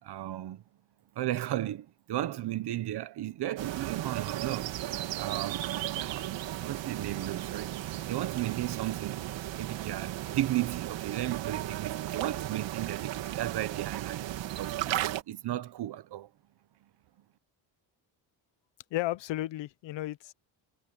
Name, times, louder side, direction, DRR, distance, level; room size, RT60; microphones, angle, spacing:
voice 1, 0.0-0.6 1.1-4.7 5.2-6.3 6.6-9.2 9.5-14.3 14.5-16.3, right 14 dB, 60° right, 1.2 m, -35 dB
sound 1, 3.6-15.2, right 13 dB, 80° right, 2.5 m, -35 dB
voice 2, 18.9-20.3, left 15 dB, 80° left, 0.9 m, -33 dB
cardioid pair, 140°, 44 cm